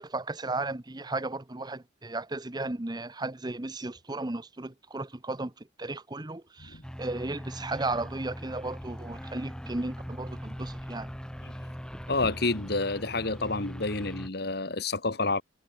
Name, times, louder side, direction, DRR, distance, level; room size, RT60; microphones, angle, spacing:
voice 1, 0.0-11.1, right 2 dB, 25° right, 1.0 m, -35 dB
sound 1, 6.8-14.3, equal, 5° left, 7.4 m, -41 dB
voice 2, 12.1-15.4, left 3 dB, 60° left, 2.0 m, -29 dB
head